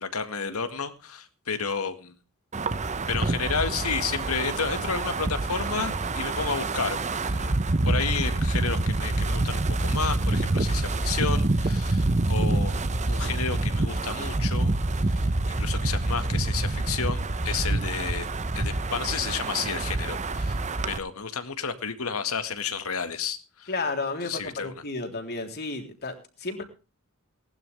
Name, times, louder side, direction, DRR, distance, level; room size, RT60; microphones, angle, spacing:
voice 1, 0.0-2.1 3.1-7.0 7.3-7.6 7.9-14.7 15.0-15.2 15.6-18.3 18.6-20.6 20.9-23.7 24.2-24.7, left 5 dB, 85° left, 9 dB, 2.0 m, -31 dB
Wind, 2.5-21.0, right 2 dB, 35° right, 0.9 m, -27 dB
voice 2, 23.7-26.6, left 3 dB, 50° left, 4 dB, 3.6 m, -32 dB
19.0 x 12.0 x 3.5 m, 0.32 s
head